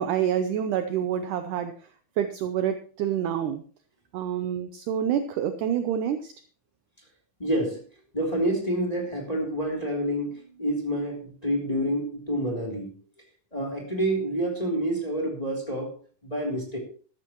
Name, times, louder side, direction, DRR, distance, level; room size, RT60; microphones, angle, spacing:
voice 1, 0.0-1.8 2.2-3.6 4.1-6.3, right 9 dB, 75° right, 9 dB, 2.0 m, -27 dB
voice 2, 7.4-7.8 8.1-12.9 13.5-15.9 16.2-16.8, right 1 dB, 10° left, 0 dB, 3.0 m, -28 dB
13.5 x 13.0 x 3.0 m, 0.40 s
omnidirectional pair, 4.3 m